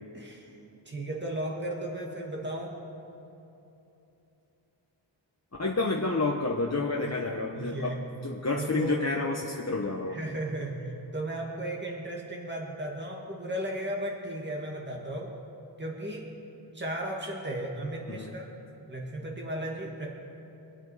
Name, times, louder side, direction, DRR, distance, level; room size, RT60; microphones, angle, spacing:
voice 1, 0.1-0.5 0.9-2.8 7.0-7.1 7.5-8.0 8.6-9.0 10.1-15.3 15.8-16.3 16.7-18.5 18.9-20.1, right 1 dB, 25° right, -1 dB, 2.0 m, -35 dB
voice 2, 5.6-10.2 18.1-18.3, left 3 dB, 35° left, 0 dB, 1.0 m, -29 dB
24.5 x 8.6 x 4.9 m, 2.9 s
wide cardioid pair, 80°, 47 cm